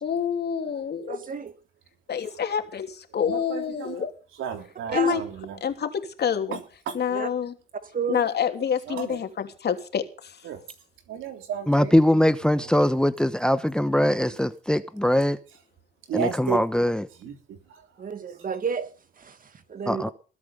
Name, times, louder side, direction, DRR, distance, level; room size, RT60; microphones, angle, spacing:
voice 1, 0.0-1.2 2.1-2.9 3.1-4.1 4.9-5.2 5.6-5.9 6.2-6.6 6.9-7.5 8.1-10.0, left 7 dB, 55° left, 3.0 m, -27 dB
voice 2, 1.1-1.5 4.9-5.1 7.1-7.3 7.8-8.2 18.0-20.1, right 6 dB, 45° right, 2.0 m, -32 dB
voice 3, 3.3-4.1 4.4-5.6 6.5-6.6 6.9-7.0 8.9-9.2 10.4-10.6 11.1-11.9 16.1-16.6 17.2-17.3, right 8 dB, 85° right, 3.3 m, -32 dB
voice 4, 11.7-15.4 16.1-17.1 19.9-20.1, left 1 dB, 5° left, 1.0 m, -22 dB
20.5 x 8.5 x 5.5 m
cardioid pair, 90°, 20 cm